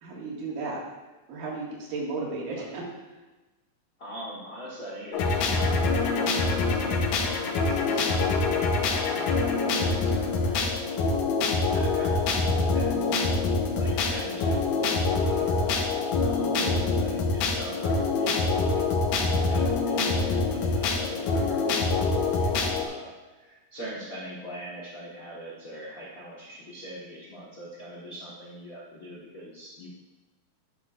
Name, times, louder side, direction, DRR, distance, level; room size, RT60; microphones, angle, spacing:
voice 1, 0.0-0.8 1.3-2.8 16.4-16.8, right 3 dB, 85° right, -4 dB, 3.5 m, -34 dB
voice 2, 4.0-6.1 6.7-7.3 7.5-10.6 11.7-12.2 12.6-13.4 13.7-15.8 16.2-18.8 19.5-29.9, equal, 50° left, -6 dB, 1.0 m, -42 dB
sound 1, 5.1-22.8, left 3 dB, 75° left, 2.2 m, -25 dB
12.0 x 8.2 x 2.4 m, 1.2 s
omnidirectional pair, 3.8 m